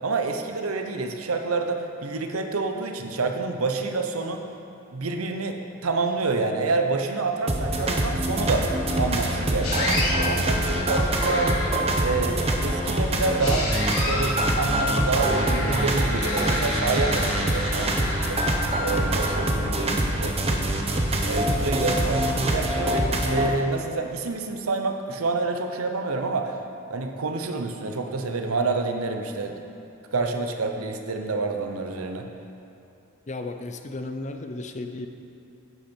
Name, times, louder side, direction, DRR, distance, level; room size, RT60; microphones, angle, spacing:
voice 1, 0.0-4.5 4.9-8.7 9.0-11.6 12.0-13.7 14.0-18.4 18.8-20.6 21.2-26.5 26.9-29.6 30.1-32.3, right 3 dB, 85° right, 5 dB, 0.8 m, -28 dB
sound 1, 7.5-23.5, right 1 dB, 30° right, 0.9 m, -24 dB
sound 2, 9.6-10.1 11.2-11.9 13.4-14.4 15.1-18.6, left 1 dB, 85° left, 2.4 m, -30 dB
voice 2, 33.3-35.1, left 2 dB, 35° left, 6 dB, 0.6 m, -34 dB
11.0 x 8.1 x 4.4 m, 2.8 s
head